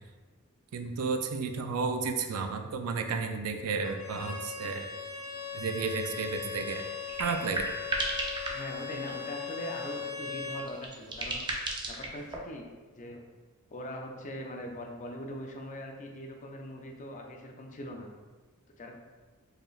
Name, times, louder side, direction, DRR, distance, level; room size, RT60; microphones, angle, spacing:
voice 1, 0.7-4.9 5.5-6.8 7.2-7.7, right 4 dB, 80° right, 6 dB, 0.4 m, -32 dB
Bowed string instrument, 3.8-10.7, left 6 dB, 80° left, 1.2 m, -39 dB
sound 1, 5.2-5.3 5.6-5.7 6.0-6.1 6.4-9.4 9.9-12.4, right 1 dB, 20° right, 0.5 m, -36 dB
voice 2, 8.5-11.4 11.9-12.7 13.0-13.2 13.7-18.1 18.8-18.9, equal, 35° left, 2 dB, 0.5 m, -41 dB
4.7 x 3.1 x 2.3 m, 1.3 s
head